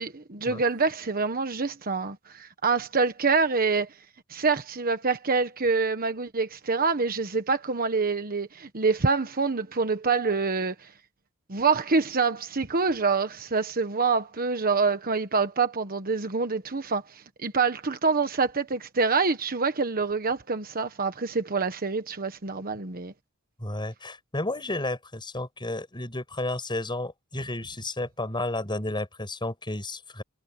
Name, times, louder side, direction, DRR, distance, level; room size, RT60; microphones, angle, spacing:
voice 1, 0.0-3.9 4.3-10.9 11.5-23.1, right 4 dB, 45° right, 1.3 m, -26 dB
voice 2, 23.6-30.2, left 2 dB, 20° left, 7.6 m, -32 dB
head